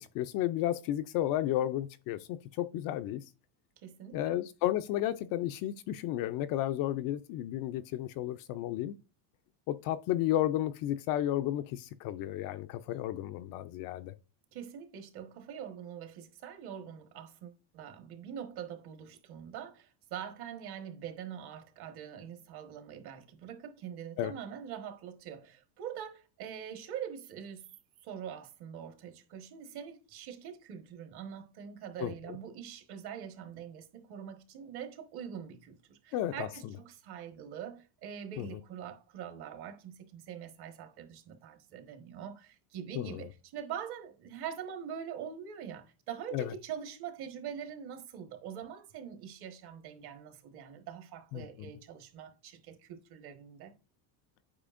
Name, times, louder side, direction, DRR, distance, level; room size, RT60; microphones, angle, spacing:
voice 1, 0.0-3.2 4.1-8.9 9.7-14.1 24.2-24.3 32.0-32.4 36.1-36.7 38.4-38.5 42.9-43.3 46.3-46.5 51.3-51.7, left 13 dB, 50° left, 0.4 m, -33 dB
voice 2, 3.8-4.4 14.5-27.7 28.0-53.7, right 8 dB, 55° right, 1.5 m, -44 dB
8.6 x 5.0 x 2.5 m
cardioid pair, 135°, 47 cm